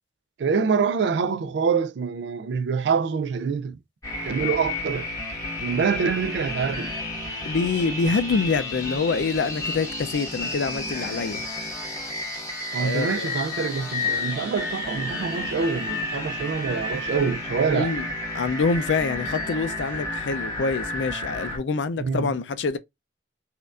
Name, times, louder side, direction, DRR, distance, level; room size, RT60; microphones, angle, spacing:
voice 1, 0.4-3.8 4.2-5.1 5.6-6.9 12.7-17.9 22.0-22.3, right 5 dB, 75° right, 0.4 m, -25 dB
sound 1, 4.0-21.6, left 2 dB, 20° left, 1.4 m, -31 dB
voice 2, 7.5-11.4 12.8-13.3 17.7-18.1 18.3-22.8, left 4 dB, 85° left, 0.4 m, -26 dB
4.3 x 2.4 x 2.4 m
head